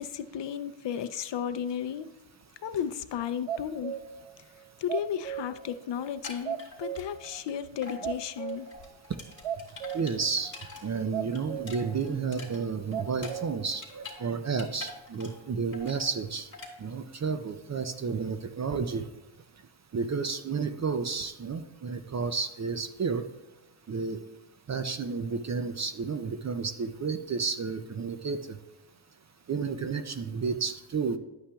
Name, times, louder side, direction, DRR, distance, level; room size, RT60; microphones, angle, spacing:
voice 1, 0.0-2.1 2.6-3.9 4.8-8.7, left 8 dB, 60° left, 12 dB, 0.5 m, -34 dB
sound 1, 3.5-4.3 4.5-5.7 6.0-6.1 6.4-7.3 7.6-7.7 8.0-8.9 9.2-10.3 10.6-10.7 11.1-11.9 12.3-12.4 12.9-13.7, right 9 dB, 85° right, 0.7 m, -36 dB
sound 2, 6.0-7.5 7.8-8.0 8.4-10.8 11.1-14.2 14.5-15.5 15.7-16.1 16.5-16.7, left 3 dB, 35° left, 2.3 m, -44 dB
voice 2, 9.7-16.5 16.8-19.1 19.9-23.3 23.9-24.2 24.7-28.6 29.5-31.2, right 5 dB, 35° right, 9 dB, 0.4 m, -31 dB
11.0 x 8.7 x 2.3 m, 1.1 s
wide cardioid pair, 170°, 49 cm